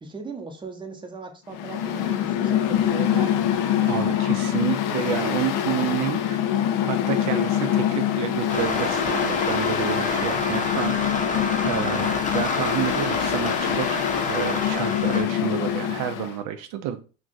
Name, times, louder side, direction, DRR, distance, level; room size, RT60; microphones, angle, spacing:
voice 1, 0.0-3.4, right 3 dB, 15° right, 4 dB, 0.7 m, -37 dB
Mechanical fan, 1.5-16.3, left 10 dB, 65° left, 0.5 m, -25 dB
voice 2, 3.8-6.4 6.8-17.0, right 10 dB, 65° right, 7 dB, 0.5 m, -30 dB
sound 1, 8.5-15.2, left 3 dB, 20° left, 0.7 m, -28 dB
2.4 x 2.2 x 3.8 m, 0.35 s
hypercardioid pair, 75°, 35 cm